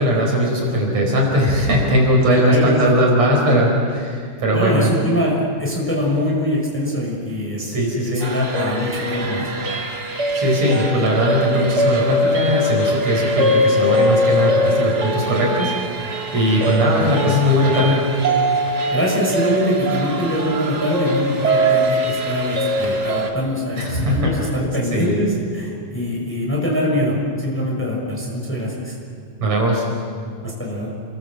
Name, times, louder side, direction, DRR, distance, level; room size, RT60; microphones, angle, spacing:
voice 1, 0.0-4.9 7.6-8.3 10.4-18.1 23.8-24.4 24.9-25.2 29.4-29.9, equal, 50° right, -1 dB, 5.7 m, -19 dB
voice 2, 2.3-2.9 4.5-7.7 8.1-9.5 16.8-17.3 18.9-29.0 30.4-30.9, left 1 dB, 5° left, -3 dB, 6.0 m, -23 dB
sound 1, 8.2-23.3, equal, 30° right, 2.4 m, -22 dB
29.5 x 22.0 x 7.8 m, 2.2 s
omnidirectional pair, 4.0 m